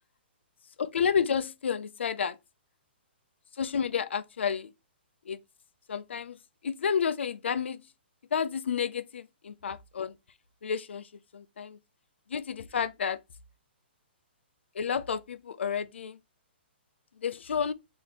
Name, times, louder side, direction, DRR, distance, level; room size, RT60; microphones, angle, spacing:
voice 1, 0.8-2.4 3.5-4.7 5.2-5.4 5.9-6.4 6.6-7.9 8.3-10.2 10.6-11.8 12.3-13.2 14.7-16.2 17.2-17.7, left 7 dB, 80° left, 0.5 m, -30 dB
4.1 x 2.8 x 4.1 m
hypercardioid pair, 150°, 6 cm